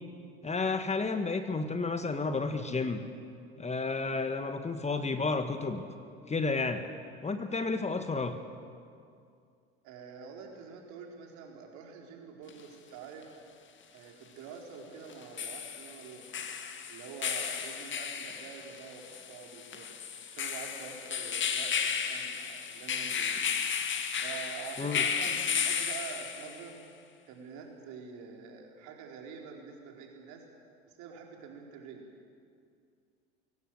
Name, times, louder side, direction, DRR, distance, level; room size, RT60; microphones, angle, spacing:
voice 1, 0.4-3.0 3.6-5.8 6.3-6.9 7.2-8.4 24.8-25.0, left 3 dB, 20° left, 8 dB, 1.6 m, -31 dB
voice 2, 9.8-13.4 13.9-16.3 16.9-19.9 20.3-23.6 24.2-26.8 27.3-30.4 30.9-32.1, right 6 dB, 60° right, 1 dB, 4.6 m, -46 dB
sound 1, 12.5-12.6 15.1-26.7, left 7 dB, 35° left, 2.1 m, -34 dB
23.5 x 17.5 x 7.8 m, 2.3 s
hypercardioid pair, 70°, 32 cm